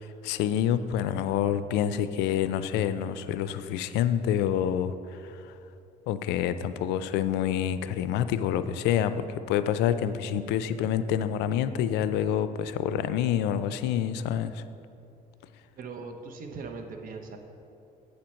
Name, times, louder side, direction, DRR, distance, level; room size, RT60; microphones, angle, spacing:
voice 1, 0.2-5.4 6.1-14.6, left 9 dB, 90° left, 12 dB, 0.4 m, -27 dB
voice 2, 15.8-17.4, right 4 dB, 55° right, 5 dB, 0.9 m, -40 dB
8.2 x 4.4 x 6.3 m, 2.7 s
cardioid pair, 110°, 17 cm